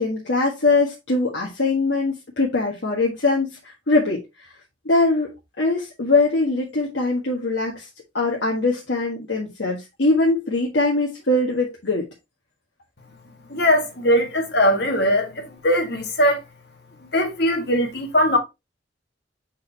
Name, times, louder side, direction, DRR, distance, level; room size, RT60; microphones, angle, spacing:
voice 1, 0.0-4.5 4.8-7.9 8.1-12.1, left 2 dB, 75° left, 1.6 m, -22 dB
voice 2, 13.5-16.4 17.1-18.4, equal, 60° left, 1.9 m, -20 dB
6.6 x 5.1 x 2.8 m
head